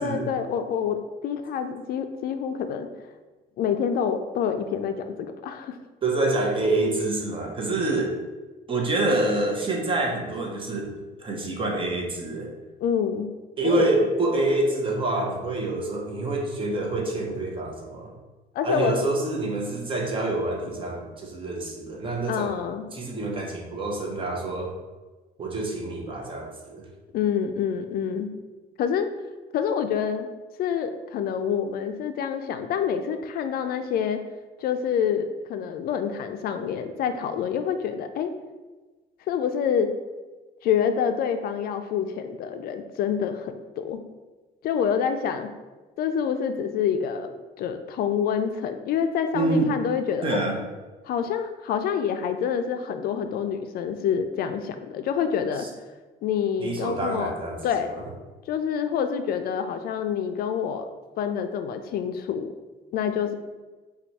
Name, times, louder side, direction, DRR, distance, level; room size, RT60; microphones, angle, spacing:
voice 1, 0.0-2.9 3.6-5.8 12.8-13.3 13.6-13.9 18.5-18.9 22.3-22.9 27.1-28.3 28.8-29.1 29.5-30.3 30.6-34.2 34.6-38.3 39.3-39.9 40.6-44.0 44.6-45.5 46.0-50.4 51.1-55.7 56.2-57.3 57.6-57.9 58.5-60.8 61.2-62.5 62.9-63.4, left 7 dB, 65° left, 8 dB, 0.4 m, -27 dB
voice 2, 6.0-8.2 8.7-10.9 11.2-12.5 13.6-18.1 18.6-22.6 22.9-24.7 25.4-26.8 49.3-49.7 50.2-50.6 55.6-55.7 56.6-57.6, right 2 dB, 30° right, 0 dB, 0.9 m, -26 dB
4.4 x 2.3 x 4.1 m, 1.2 s
cardioid pair, 110°, 17 cm